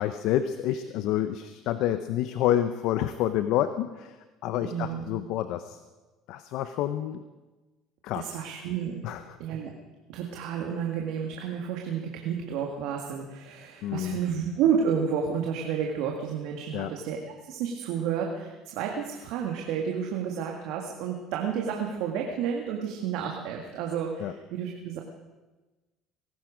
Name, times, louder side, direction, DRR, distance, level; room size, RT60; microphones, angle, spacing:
voice 1, 0.0-4.2 4.4-5.8 6.3-7.2 8.0-8.4 9.0-9.4 13.8-14.2 16.7-16.9 24.2-24.4, left 11 dB, 70° left, 11 dB, 0.7 m, -28 dB
voice 2, 4.6-5.1 8.1-9.0 9.4-9.7 10.1-17.2 17.5-25.0, right 7 dB, 70° right, 1 dB, 1.8 m, -31 dB
21.5 x 12.5 x 5.1 m, 1.2 s
supercardioid pair, 80°, 0 cm